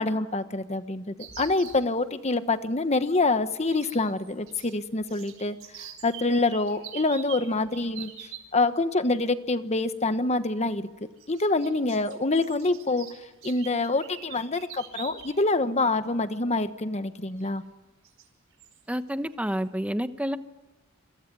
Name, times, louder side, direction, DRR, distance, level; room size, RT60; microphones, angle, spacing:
voice 1, 0.0-10.9 11.3-13.1 13.4-17.6, left 2 dB, 30° left, 10 dB, 1.3 m, -26 dB
sound 1, 1.2-1.8 3.7-4.8 5.0-8.4 9.8-10.0 11.2-15.4 15.8-15.9 17.4-17.5 18.0-18.3 18.6-18.8, right 9 dB, 70° right, 5.1 m, -44 dB
voice 2, 18.9-20.4, equal, 5° right, 10 dB, 1.1 m, -29 dB
27.5 x 23.0 x 9.4 m, 1.1 s
head